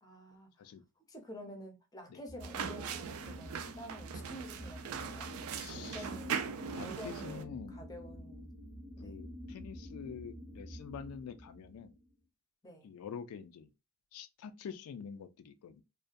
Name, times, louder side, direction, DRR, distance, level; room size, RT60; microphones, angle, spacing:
voice 1, 0.0-0.5 1.1-5.3 5.6-6.5 6.8-8.5 9.0-9.2 12.6-12.9, equal, 15° left, 0.5 m, -49 dB
sound 1, 2.3-12.1, equal, 30° right, 0.7 m, -48 dB
sound 2, 2.4-7.4, right 7 dB, 75° right, 0.3 m, -40 dB
voice 2, 5.5-6.1 6.7-7.8 9.0-11.9 12.8-13.7 14.1-15.8, left 7 dB, 90° left, 0.3 m, -46 dB
2.4 x 2.2 x 2.4 m
head